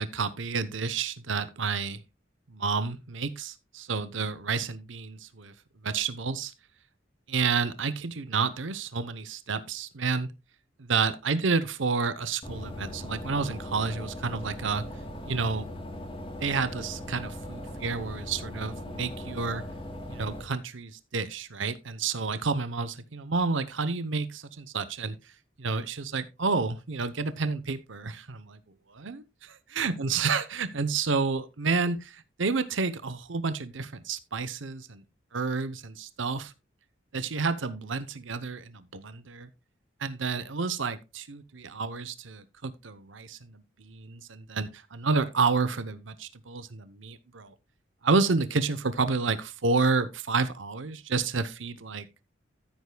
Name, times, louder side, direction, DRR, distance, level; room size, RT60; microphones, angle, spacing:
voice 1, 0.0-2.0 2.5-5.5 5.8-6.5 7.3-10.3 10.8-14.8 15.2-15.7 16.4-19.6 20.1-25.2 25.6-28.6 28.9-35.0 35.3-36.5 37.1-39.5 40.0-47.5 48.0-52.1, right 4 dB, 80° right, 0.8 m, -30 dB
sound 1, 12.4-20.4, left 1 dB, 30° left, 2.5 m, -39 dB
14.0 x 8.3 x 2.3 m
head